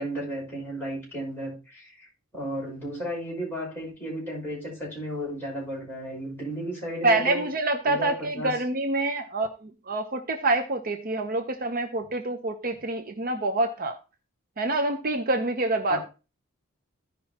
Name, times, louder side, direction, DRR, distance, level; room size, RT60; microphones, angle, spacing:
voice 1, 0.0-2.1 2.3-7.5 7.9-8.6 15.9-16.0, equal, 10° left, -6 dB, 5.8 m, -34 dB
voice 2, 7.0-14.0 14.6-16.0, right 2 dB, 45° right, 6 dB, 0.8 m, -26 dB
15.0 x 5.4 x 2.9 m, 0.30 s
head